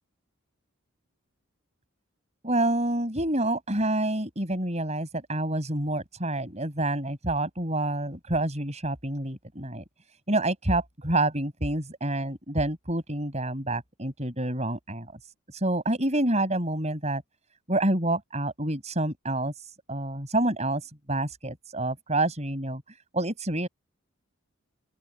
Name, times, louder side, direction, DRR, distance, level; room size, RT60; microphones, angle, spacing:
voice 1, 2.4-9.8 10.3-15.1 15.5-17.2 17.7-23.7, right 1 dB, 30° right, 7.3 m, -28 dB
open air
head